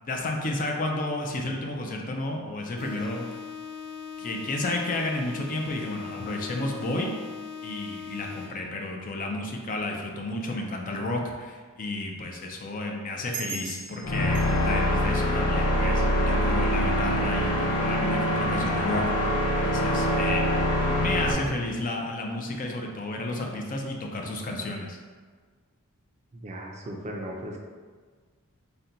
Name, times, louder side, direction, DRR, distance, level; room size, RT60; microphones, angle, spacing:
voice 1, 0.0-3.3 4.2-7.1 7.6-19.3 19.6-20.4 21.0-25.0, left 2 dB, 35° left, 1 dB, 0.4 m, -32 dB
sound 1, 2.8-8.8, left 6 dB, ahead, 0.8 m, -40 dB
sound 2, 13.3-16.4, right 5 dB, 75° right, 0.5 m, -41 dB
sound 3, 14.0-21.3, equal, 80° left, 0.6 m, -24 dB
voice 2, 26.3-27.6, equal, 30° right, 0 dB, 0.4 m, -37 dB
4.1 x 2.2 x 3.8 m, 1.5 s
head